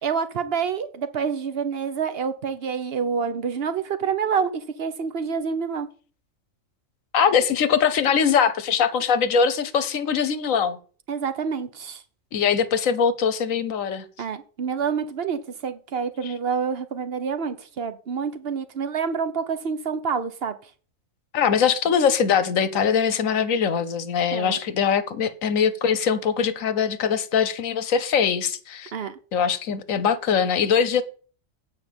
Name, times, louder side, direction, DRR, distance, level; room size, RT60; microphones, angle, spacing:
voice 1, 0.0-5.9 11.1-12.0 14.2-20.6 24.3-24.6 28.9-29.2, right 6 dB, 50° right, 1.1 m, -27 dB
voice 2, 7.1-10.8 12.3-14.0 16.2-16.3 21.3-28.9 29.3-31.0, left 7 dB, 75° left, 1.3 m, -22 dB
8.9 x 5.2 x 8.0 m
omnidirectional pair, 1.4 m